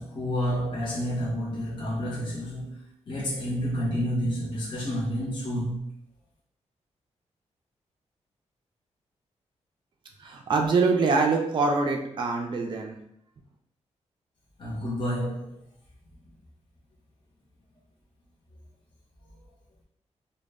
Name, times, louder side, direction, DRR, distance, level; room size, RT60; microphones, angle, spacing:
voice 1, 0.0-5.8 14.6-15.6, equal, 40° left, -7 dB, 0.8 m, -30 dB
voice 2, 10.2-13.0, right 4 dB, 40° right, 2 dB, 0.4 m, -24 dB
2.1 x 2.0 x 3.4 m, 0.75 s
wide cardioid pair, 120°, 12 cm